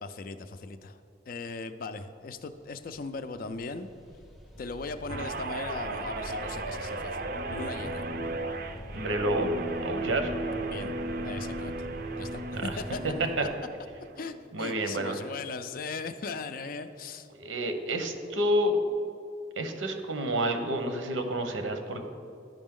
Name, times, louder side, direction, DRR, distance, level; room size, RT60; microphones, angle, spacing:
voice 1, 0.0-1.0 1.3-3.9 4.6-8.0 10.7-10.9 11.2-11.7 12.2-13.0 14.2-17.3, left 4 dB, 45° left, 10 dB, 0.4 m, -38 dB
sound 1, 2.5-2.6 2.8-13.6, equal, ahead, 0.6 m, -44 dB
Guitar, 5.1-13.7 14.1-14.4, right 2 dB, 50° right, 0.4 m, -35 dB
voice 2, 8.9-9.5 9.8-10.3 12.5-12.8 13.4-13.5 14.5-15.2 17.4-18.8 19.6-22.1, right 1 dB, 85° right, 6 dB, 0.8 m, -29 dB
12.0 x 5.1 x 3.7 m, 2.5 s
head